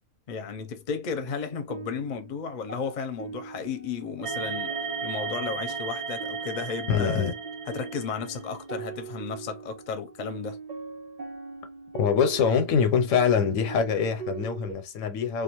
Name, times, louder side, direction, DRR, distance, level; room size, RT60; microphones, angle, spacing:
voice 1, 0.3-4.7 5.0-7.3 7.7-10.6, left 6 dB, 50° left, 0.6 m, -34 dB
sound 1, 1.2-14.7, right 5 dB, 45° right, 0.7 m, -41 dB
sound 2, 4.2-8.5, right 5 dB, 60° right, 0.3 m, -34 dB
voice 2, 6.9-7.3 12.0-15.4, left 6 dB, 85° left, 1.0 m, -24 dB
2.4 x 2.3 x 2.9 m
omnidirectional pair, 1.3 m